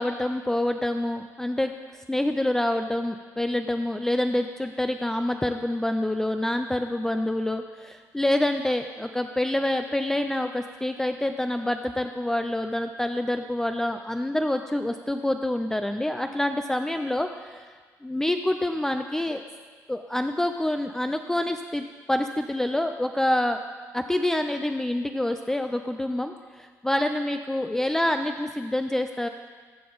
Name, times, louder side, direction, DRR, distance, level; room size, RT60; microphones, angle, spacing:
voice 1, 0.0-17.7 18.0-19.4 19.9-23.6 23.9-29.3, left 1 dB, 5° left, 6 dB, 0.3 m, -27 dB
13.5 x 6.0 x 3.9 m, 1.5 s
cardioid pair, 105°, 7 cm